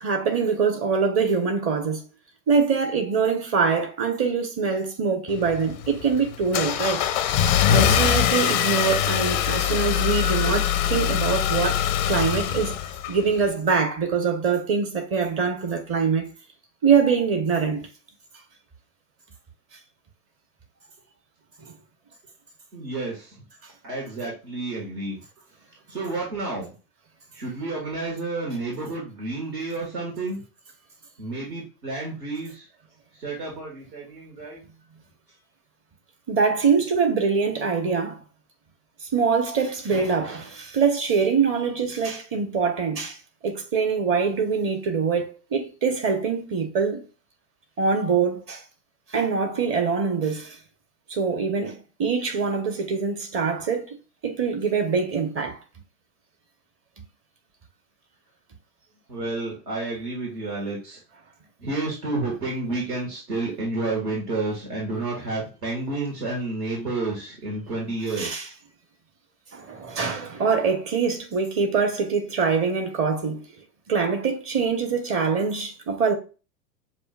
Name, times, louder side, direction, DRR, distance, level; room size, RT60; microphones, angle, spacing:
voice 1, 0.0-2.0 2.5-7.1 7.7-12.8 13.1-16.3 16.8-17.9 36.3-38.2 39.1-43.2 43.4-47.0 47.8-48.6 49.1-50.6 51.1-54.0 54.2-55.6 68.1-68.5 69.5-73.4 73.9-76.1, right 5 dB, 25° right, 1.1 m, -24 dB
Car / Engine starting, 5.3-13.5, left 10 dB, 30° left, 0.4 m, -23 dB
voice 2, 22.7-23.3 23.8-25.2 25.9-26.7 27.3-30.4 31.2-32.6 33.2-34.6 59.1-61.0 61.6-68.5, right 2 dB, 65° right, 2.0 m, -30 dB
6.7 x 2.7 x 2.4 m
figure-of-eight pair, 100°, 50 cm